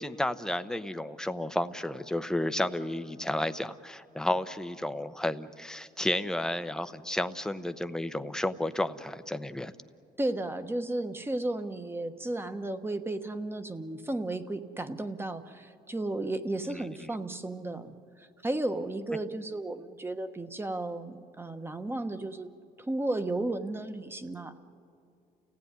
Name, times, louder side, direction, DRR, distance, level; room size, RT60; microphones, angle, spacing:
voice 1, 0.0-9.7 16.7-17.1, left 1 dB, 5° left, 10 dB, 0.8 m, -32 dB
voice 2, 10.2-22.5 22.8-24.6, right 2 dB, 15° right, 9 dB, 1.2 m, -34 dB
29.5 x 16.5 x 9.7 m, 2.4 s
cardioid pair, 110°, 17 cm